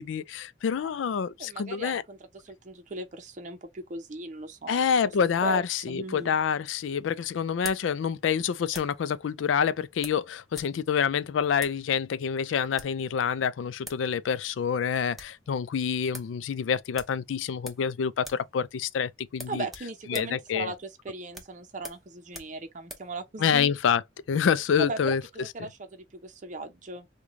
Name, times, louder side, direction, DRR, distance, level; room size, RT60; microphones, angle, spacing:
voice 1, 0.0-2.0 4.7-19.7 20.1-20.7 23.4-24.0 24.3-25.7, left 7 dB, 85° left, 0.4 m, -27 dB
voice 2, 1.4-2.2 2.4-4.9 5.2-5.6 5.9-6.3 19.5-23.7 24.8-27.1, right 3 dB, 40° right, 0.6 m, -38 dB
sound 1, 6.2-9.1 10.0-10.8 11.0-11.1 11.5-11.8 12.6-13.0 13.6-13.7 13.8-14.1 14.4-14.5 14.8-15.4 15.8-15.9 16.1-16.4 16.9-17.9 18.2-18.5 18.8-18.9 19.3-23.1, equal, ahead, 0.7 m, -45 dB
3.1 x 2.3 x 3.6 m
head